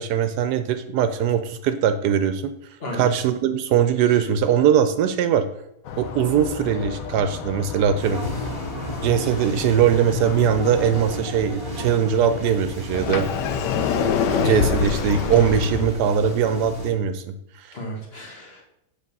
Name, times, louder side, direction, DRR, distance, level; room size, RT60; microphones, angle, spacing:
voice 1, 0.0-2.5 2.9-5.5 6.0-8.2 9.0-13.3 13.9-17.2, right 8 dB, 75° right, 9 dB, 1.1 m, -21 dB
sound 1, 5.8-11.2, left 6 dB, 65° left, 1.0 m, -34 dB
sound 2, 8.0-16.9, equal, 20° left, 2.0 m, -33 dB
Sliding door, 12.9-15.9, left 7 dB, 90° left, 1.2 m, -24 dB
voice 2, 13.6-14.0 17.7-18.6, equal, 40° left, 0 dB, 1.4 m, -35 dB
7.6 x 3.6 x 5.3 m, 0.80 s
omnidirectional pair, 1.8 m